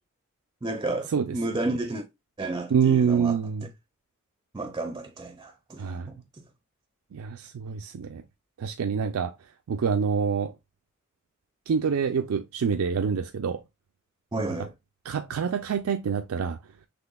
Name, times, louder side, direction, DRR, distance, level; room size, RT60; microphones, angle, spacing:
voice 1, 0.6-2.1 2.4-3.4 4.5-6.2 14.3-14.7, right 2 dB, 20° right, 0.4 m, -32 dB
voice 2, 2.7-3.7 5.8-6.1 7.1-8.2 8.6-9.3 9.7-10.5 11.7-13.6 15.1-16.6, right 6 dB, 85° right, 0.4 m, -26 dB
6.0 x 3.2 x 2.2 m
head